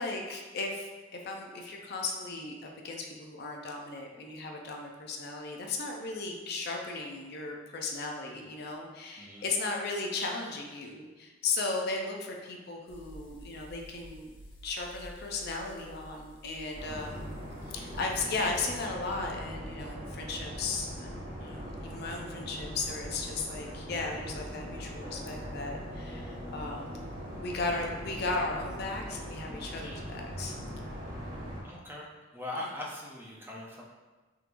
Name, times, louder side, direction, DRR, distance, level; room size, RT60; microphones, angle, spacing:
voice 1, 0.0-14.4 14.6-17.3 17.7-27.1 27.4-30.6, left 3 dB, 55° left, 1 dB, 0.4 m, -36 dB
sound 1, 12.9-18.0, equal, 90° left, 0.7 m, -50 dB
sound 2, 16.7-31.6, equal, 50° right, 0.9 m, -41 dB
voice 2, 29.6-30.0 31.6-33.8, left 1 dB, 10° right, -3 dB, 0.4 m, -41 dB
3.6 x 3.0 x 2.5 m, 1.2 s
head